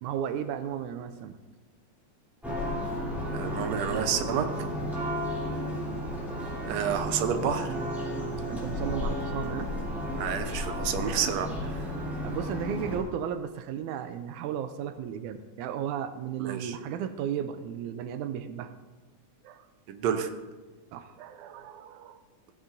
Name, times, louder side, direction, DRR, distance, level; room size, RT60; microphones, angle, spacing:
voice 1, 0.0-1.4 4.8-5.0 8.4-9.7 11.5-11.7 12.2-18.7 19.4-19.7 20.9-22.2, right 8 dB, 90° right, 9 dB, 2.0 m, -35 dB
Church bell, 2.4-13.0, equal, ahead, 2.9 m, -33 dB
voice 2, 3.3-4.5 6.7-7.8 10.2-11.9 16.4-16.8 19.9-20.3, right 8 dB, 75° right, 7 dB, 1.8 m, -29 dB
16.0 x 9.9 x 2.6 m, 1.3 s
omnidirectional pair, 3.4 m